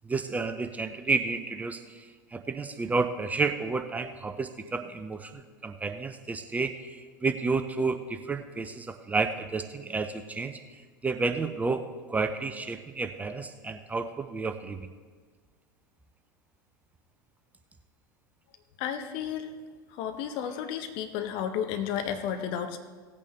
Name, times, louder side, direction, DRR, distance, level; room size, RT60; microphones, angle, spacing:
voice 1, 0.1-2.0 2.3-10.5 11.0-14.9, right 4 dB, 15° right, 8 dB, 0.5 m, -31 dB
voice 2, 18.8-19.5 19.9-22.8, left 8 dB, 45° left, 7 dB, 1.0 m, -32 dB
17.5 x 8.4 x 3.3 m, 1.5 s
figure-of-eight pair, 85°, 11 cm